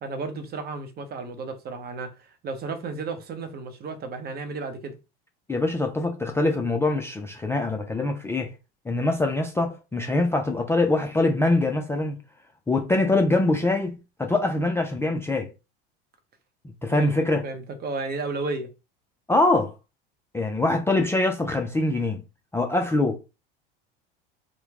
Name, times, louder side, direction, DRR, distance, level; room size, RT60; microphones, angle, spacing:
voice 1, 0.0-5.0 16.9-17.1 17.4-18.7, right 3 dB, 35° right, 0.7 m, -33 dB
voice 2, 5.5-8.5 8.9-12.2 12.7-15.5 16.8-17.4 19.3-19.7 20.3-22.2 22.5-23.2, left 2 dB, 10° left, 0.4 m, -23 dB
3.0 x 2.1 x 3.4 m
hypercardioid pair, 85°, 29 cm